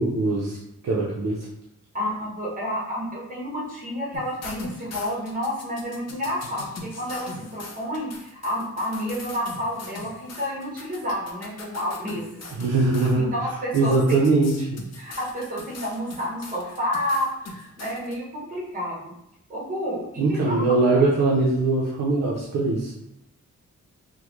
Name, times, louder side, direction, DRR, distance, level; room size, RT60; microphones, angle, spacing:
voice 1, 0.0-1.5 12.5-13.3 13.7-14.8 20.2-22.9, right 3 dB, 60° right, -4 dB, 0.5 m, -22 dB
voice 2, 1.9-12.3 13.2-14.2 15.0-19.1 19.5-20.6 20.9-21.0, equal, 30° right, -4 dB, 1.0 m, -30 dB
sound 1, 4.1-13.2 13.7-18.1, left 3 dB, 60° left, 0.5 m, -41 dB
3.6 x 2.1 x 3.0 m, 0.82 s
wide cardioid pair, 145°, 30 cm